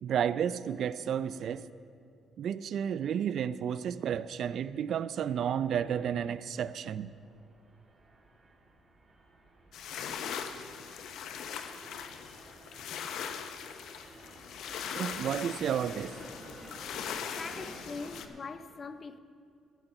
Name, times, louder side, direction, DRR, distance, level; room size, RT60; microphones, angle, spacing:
voice 1, 0.0-1.7 2.4-7.1 14.9-16.1, right 8 dB, 60° right, 0.4 m, -32 dB
sound 1, 6.6-18.3, right 1 dB, 30° right, 1.8 m, -53 dB
sound 2, 9.7-18.3, left 7 dB, 75° left, 0.7 m, -40 dB
voice 2, 17.0-19.2, left 4 dB, 35° left, 0.6 m, -42 dB
14.0 x 7.1 x 6.7 m
cardioid pair, 110°, 0 cm